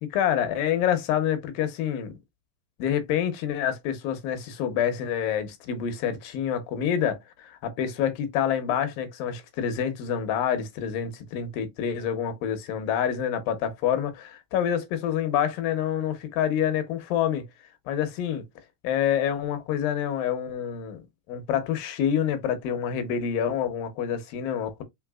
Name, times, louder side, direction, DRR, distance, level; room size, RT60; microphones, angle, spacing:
voice 1, 0.0-2.2 2.8-17.5 17.9-18.5 18.8-21.0 21.3-24.8, left 9 dB, 85° left, 2.6 m, -27 dB
5.7 x 3.3 x 2.3 m
omnidirectional pair, 3.9 m